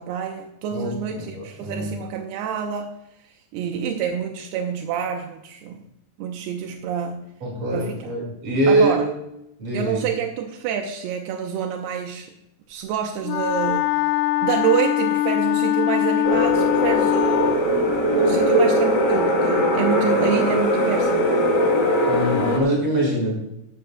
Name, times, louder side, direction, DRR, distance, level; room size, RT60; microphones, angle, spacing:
voice 1, 0.0-2.9 3.5-5.8 6.2-7.2 7.7-8.1 8.7-9.1 9.7-12.3 12.7-13.9 14.4-21.2, right 8 dB, 85° right, 3 dB, 2.8 m, -27 dB
voice 2, 1.1-1.9 7.4-9.1 9.6-10.0 22.0-23.3, right 1 dB, 35° right, -1 dB, 6.0 m, -23 dB
Wind instrument woodwind instrument, 13.2-17.7, left 13 dB, 90° left, 2.0 m, -22 dB
sound 1, 16.2-22.6, equal, 50° left, 1.2 m, -20 dB
14.5 x 12.5 x 2.3 m, 0.83 s
omnidirectional pair, 4.7 m